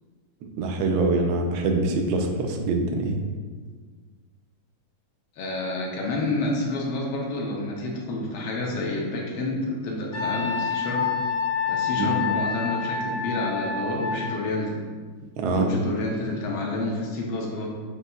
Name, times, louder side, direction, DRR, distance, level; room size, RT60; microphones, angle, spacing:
voice 1, 0.6-3.2 12.0-12.1 15.4-15.7, right 3 dB, 80° right, 3 dB, 1.4 m, -24 dB
voice 2, 5.4-11.3 11.7-14.8 15.4-17.7, left 2 dB, 80° left, -1 dB, 1.5 m, -29 dB
Wind instrument woodwind instrument, 10.1-14.3, left 6 dB, 65° left, 1.7 m, -27 dB
6.5 x 2.7 x 2.3 m, 1.5 s
omnidirectional pair, 2.2 m